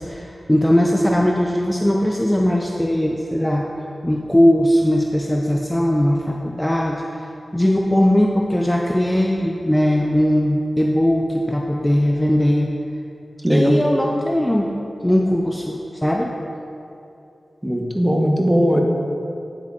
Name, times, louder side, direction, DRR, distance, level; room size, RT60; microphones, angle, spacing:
voice 1, 0.0-3.7 4.0-12.7 13.5-14.7 15.0-16.3, equal, 10° left, 0 dB, 0.5 m, -19 dB
voice 2, 13.4-13.7 17.6-18.8, equal, 15° right, 1 dB, 1.0 m, -18 dB
9.3 x 8.0 x 2.4 m, 2.7 s
cardioid pair, 55°, 0 cm